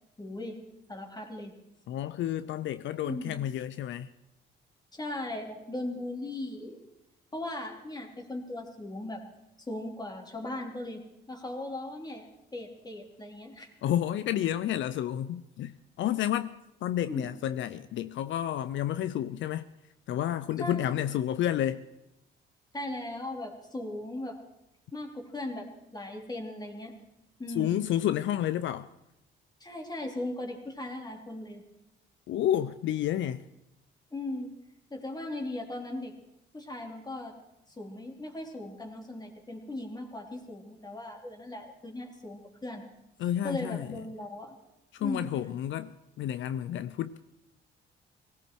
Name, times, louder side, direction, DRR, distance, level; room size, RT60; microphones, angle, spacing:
voice 1, 0.2-0.6 0.9-1.5 3.0-3.4 4.9-6.8 7.3-9.2 9.7-11.0 11.3-12.3 12.5-13.7 17.1-17.3 20.6-21.0 22.7-24.4 24.9-25.7 25.9-26.9 27.4-27.8 29.6-31.6 34.1-34.5 34.9-36.1 36.5-37.3 37.8-42.8 43.4-44.6 45.0-45.3, left 1 dB, 20° left, 3.3 m, -38 dB
voice 2, 1.9-4.1 13.8-15.7 16.0-16.5 16.8-19.7 20.1-21.9 27.6-28.9 32.3-33.4 43.2-43.9 44.9-47.2, left 11 dB, 75° left, 0.6 m, -30 dB
19.0 x 17.0 x 4.6 m
cardioid pair, 90°, 20 cm